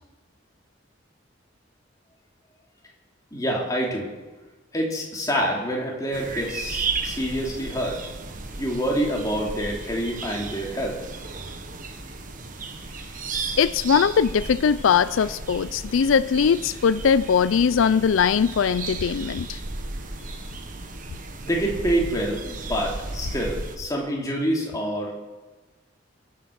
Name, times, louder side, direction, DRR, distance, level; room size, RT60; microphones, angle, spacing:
voice 1, 3.3-4.1 4.7-8.0 8.6-11.0 20.3-20.4 21.4-25.1, equal, 20° left, -2 dB, 2.9 m, -27 dB
sound 1, 6.1-23.8, right 3 dB, 40° right, 1.3 m, -34 dB
voice 2, 13.6-19.6, left 6 dB, 80° left, 16 dB, 0.4 m, -20 dB
22.0 x 8.6 x 6.5 m, 1.2 s
head